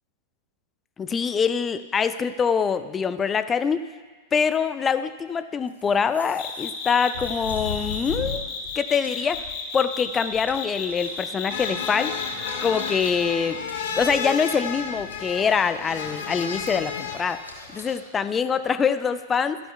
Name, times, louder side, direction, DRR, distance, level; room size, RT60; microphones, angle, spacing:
voice 1, 1.0-3.8 4.3-8.5 8.8-9.4 9.7-12.1 12.6-13.6 14.0-17.4 17.7-19.6, left 6 dB, 20° left, 12 dB, 0.4 m, -24 dB
sound 1, 5.7-8.7 9.0-9.9 10.2-13.1 13.7-14.5 14.8-15.4 15.9-18.0, left 4 dB, 90° left, 1.8 m, -39 dB
sound 2, 6.4-13.3, left 6 dB, 40° left, 1.6 m, -33 dB
sound 3, 11.5-17.2, left 6 dB, 60° left, 1.1 m, -32 dB
13.5 x 11.0 x 2.3 m, 1.4 s
figure-of-eight pair, 95°, 0 cm